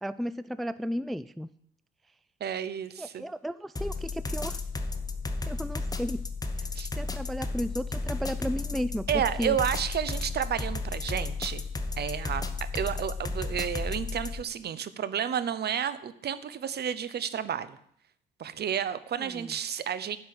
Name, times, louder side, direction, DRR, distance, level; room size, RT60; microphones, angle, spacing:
voice 1, 0.0-1.5 3.0-4.6 5.5-6.2 6.6-6.7 7.0-9.1 9.4-9.6 19.2-19.5, equal, ahead, 16 dB, 0.3 m, -34 dB
voice 2, 2.4-3.2 6.8-6.9 9.1-11.6 12.0-17.8 18.4-20.2, right 8 dB, 55° right, 15 dB, 0.8 m, -31 dB
sound 1, 3.8-14.4, left 3 dB, 20° left, 1.0 m, -33 dB
10.5 x 5.5 x 7.9 m, 0.69 s
cardioid pair, 90°, 20 cm